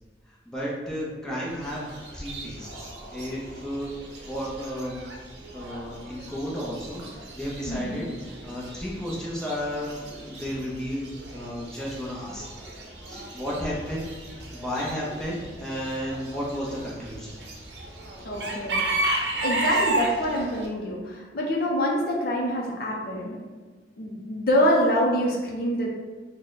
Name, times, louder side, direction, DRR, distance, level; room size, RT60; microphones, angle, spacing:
voice 1, 0.5-1.8 2.1-3.9 4.2-5.0 5.5-11.1 11.3-12.4 13.1-14.1 14.5-17.3 19.7-19.8, equal, 5° left, -7 dB, 0.7 m, -33 dB
Chicken rooster / Bird, 1.5-20.7, right 2 dB, 65° right, 0.6 m, -34 dB
voice 2, 7.7-8.0 18.2-18.9 19.4-23.4 24.0-25.9, equal, 55° left, -2 dB, 0.5 m, -25 dB
3.6 x 2.1 x 3.9 m, 1.4 s
head